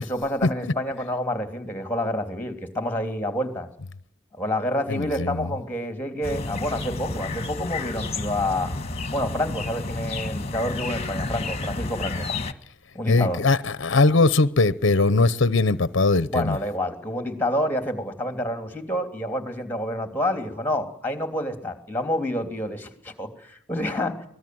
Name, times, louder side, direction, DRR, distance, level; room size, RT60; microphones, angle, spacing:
voice 1, 0.0-3.7 4.3-8.7 9.1-12.3 12.9-13.4 16.3-24.2, left 1 dB, 10° left, 3.1 m, -28 dB
voice 2, 4.9-5.5 13.1-16.6, left 3 dB, 65° left, 0.8 m, -20 dB
sound 1, 6.2-12.5, left 3 dB, 30° left, 1.6 m, -31 dB
24.5 x 19.0 x 7.8 m
head